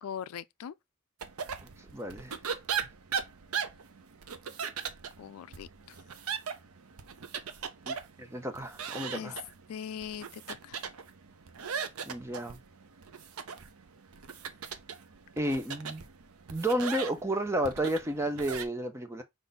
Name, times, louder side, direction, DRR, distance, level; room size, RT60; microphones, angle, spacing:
voice 1, 0.0-0.7 5.2-6.0 9.1-9.4 9.7-10.8, left 8 dB, 85° left, 0.4 m, -41 dB
sound 1, 1.2-18.6, right 7 dB, 85° right, 0.6 m, -39 dB
voice 2, 1.9-2.4 7.9-9.4 12.1-12.6 15.4-16.0 16.5-19.2, right 1 dB, 15° right, 0.6 m, -32 dB
5.3 x 2.6 x 3.9 m
head